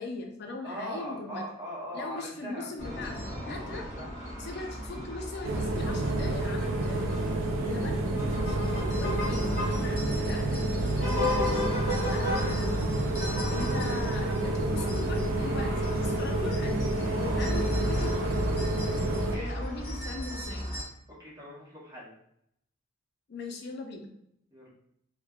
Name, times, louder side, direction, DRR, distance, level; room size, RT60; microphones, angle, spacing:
voice 1, 0.0-1.4 1.9-3.9 4.4-7.1 7.6-11.7 12.1-12.8 13.5-16.9 17.2-18.3 19.3-20.7 23.3-24.1, left 3 dB, 55° left, 3 dB, 0.4 m, -40 dB
voice 2, 0.6-2.7 3.7-4.2 7.5-7.7 11.7-11.9 19.0-19.5 21.1-22.1 24.5-24.7, equal, 15° right, -7 dB, 0.9 m, -41 dB
sound 1, 2.8-20.8, left 1 dB, 35° left, 0.9 m, -34 dB
sound 2, 5.4-19.4, right 2 dB, 75° right, 0.4 m, -29 dB
3.2 x 2.1 x 2.3 m, 0.74 s
head